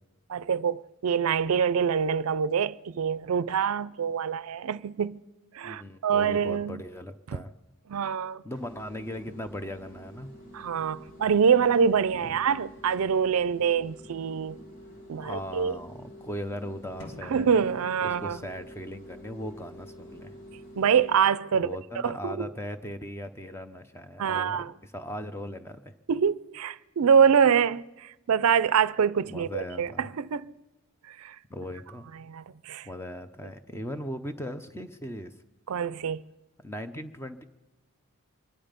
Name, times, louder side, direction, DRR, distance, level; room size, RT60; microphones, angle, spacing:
voice 1, 0.3-5.2 5.5-6.8 7.9-8.4 10.5-14.6 15.1-15.8 17.3-18.4 20.8-21.7 22.0-22.5 24.2-24.7 26.1-30.5 31.1-31.4 32.3-32.9 35.7-36.2, right 7 dB, 75° right, 0.4 m, -25 dB
voice 2, 5.6-7.5 8.4-10.3 12.1-12.4 15.2-17.5 18.0-20.4 21.6-25.9 29.3-30.1 31.5-32.1 32.8-35.3 36.6-37.4, equal, 10° left, 0.7 m, -38 dB
sound 1, 8.5-21.2, equal, 75° left, 5.2 m, -48 dB
sound 2, 17.0-19.0, equal, 55° left, 1.9 m, -49 dB
25.0 x 11.0 x 5.2 m
head